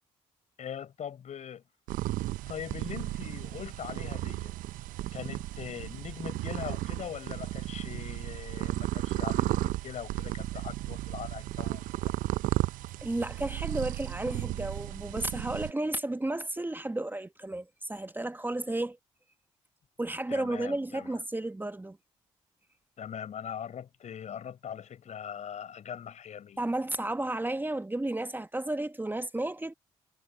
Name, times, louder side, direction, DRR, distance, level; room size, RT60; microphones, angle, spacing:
voice 1, 0.6-1.6 2.5-4.5 5.1-12.1 20.3-21.1 23.0-26.6, left 8 dB, 55° left, 4.5 m, -41 dB
sound 1, 1.9-15.7, right 17 dB, 65° right, 0.8 m, -34 dB
voice 2, 13.0-19.0 20.0-22.0 26.6-29.7, right 1 dB, 15° right, 1.5 m, -33 dB
hypercardioid pair, 45°, 14 cm